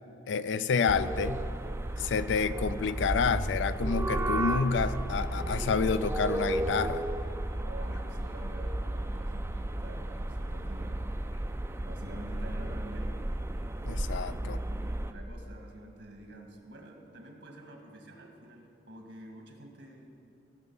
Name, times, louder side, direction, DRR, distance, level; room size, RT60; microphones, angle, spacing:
voice 1, 0.3-1.4 2.0-7.1 13.8-14.6, left 5 dB, 70° left, 14 dB, 0.4 m, -29 dB
sound 1, 0.9-15.1, right 1 dB, 15° right, 0.4 m, -33 dB
voice 2, 7.6-11.1 11.9-13.1 14.4-20.1, right 1 dB, 75° right, 2 dB, 1.7 m, -48 dB
16.5 x 6.8 x 5.5 m, 2.6 s
head